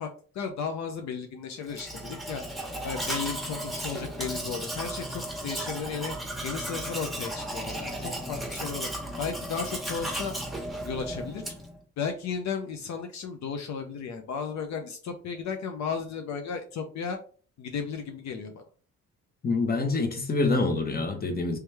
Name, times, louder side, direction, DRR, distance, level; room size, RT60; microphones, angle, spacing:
voice 1, 0.0-2.4 2.8-6.1 6.4-8.9 9.2-10.3 10.8-11.4 12.0-17.2 17.6-18.6, left 6 dB, 65° left, 0.6 m, -34 dB
Domestic sounds home sounds, 1.7-11.8, right 1 dB, ahead, 1.2 m, -35 dB
voice 2, 19.4-21.6, left 3 dB, 30° left, 1.0 m, -26 dB
3.3 x 3.1 x 3.4 m
cardioid pair, 90°, 30 cm